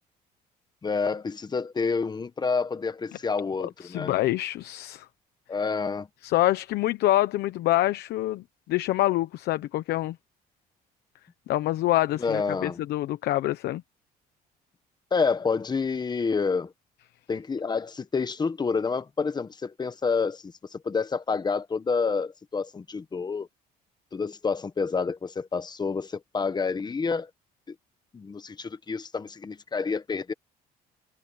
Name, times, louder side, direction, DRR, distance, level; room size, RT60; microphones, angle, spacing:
voice 1, 0.8-4.1 5.5-6.1 12.2-12.8 15.1-16.7 17.3-23.5 24.1-27.3 27.7-27.8 28.1-30.3, left 5 dB, 25° left, 1.2 m, -28 dB
voice 2, 3.6-5.1 6.2-10.2 11.5-13.8, left 15 dB, 75° left, 1.0 m, -26 dB
cardioid pair, 110°, 17 cm